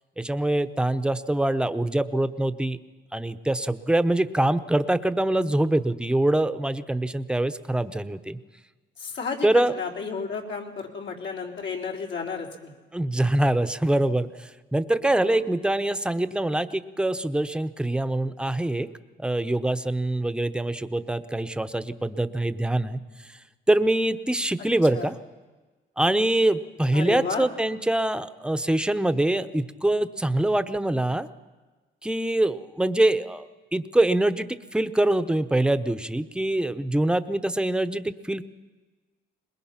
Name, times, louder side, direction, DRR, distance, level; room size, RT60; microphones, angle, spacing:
voice 1, 0.2-2.8 3.1-8.4 9.4-9.7 12.9-18.9 19.2-23.0 23.7-25.2 26.0-31.3 32.0-38.4, right 1 dB, 5° right, 12 dB, 0.9 m, -24 dB
voice 2, 9.0-12.7 15.3-15.4 24.9-25.1 26.9-27.5, left 5 dB, 70° left, 0 dB, 3.7 m, -32 dB
22.5 x 20.5 x 5.9 m, 1.3 s
cardioid pair, 90°, 20 cm